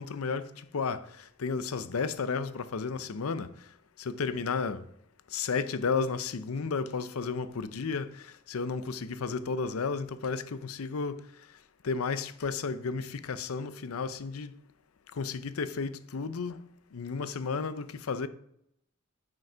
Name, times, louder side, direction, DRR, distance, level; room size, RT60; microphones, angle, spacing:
voice 1, 0.0-3.5 4.0-4.9 5.3-11.2 11.8-14.5 15.1-18.3, left 5 dB, 70° left, 0.6 m, -33 dB
9.5 x 5.2 x 5.0 m
head